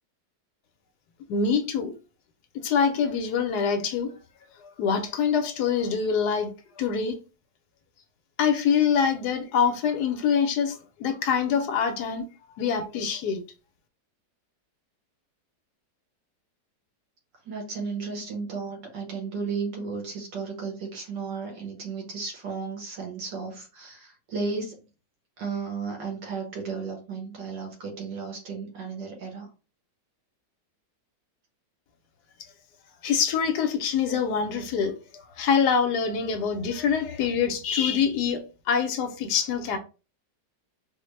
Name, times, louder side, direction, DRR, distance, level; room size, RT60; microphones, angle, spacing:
voice 1, 1.3-1.9 2.5-4.1 4.6-7.2 8.4-12.3 12.6-13.4 33.0-39.8, left 6 dB, 70° left, 1.1 m, -25 dB
voice 2, 17.5-24.8 25.4-29.5, right 4 dB, 85° right, 1.8 m, -34 dB
4.1 x 2.1 x 3.1 m
omnidirectional pair, 1.9 m